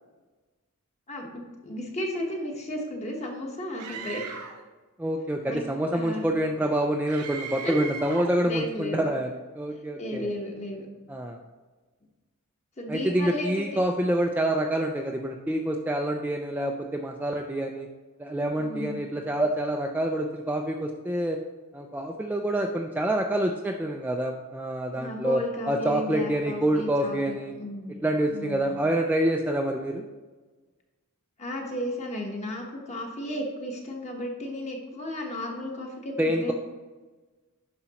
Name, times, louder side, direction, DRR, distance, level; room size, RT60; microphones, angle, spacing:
voice 1, 1.1-4.2 5.5-5.6 5.9-6.3 7.6-7.9 8.4-9.1 10.0-10.9 12.8-13.8 18.6-19.0 24.9-28.0 28.3-28.7 31.4-36.5, left 1 dB, 30° left, 1 dB, 1.2 m, -34 dB
Screaming, 3.8-4.7 7.1-8.4, right 5 dB, 85° right, 0.7 m, -38 dB
voice 2, 5.0-10.3 11.1-11.4 12.9-17.9 18.2-21.4 21.7-27.5 28.0-30.0 36.2-36.5, right 1 dB, 10° right, 2 dB, 0.3 m, -27 dB
9.8 x 5.9 x 2.9 m, 1.3 s
head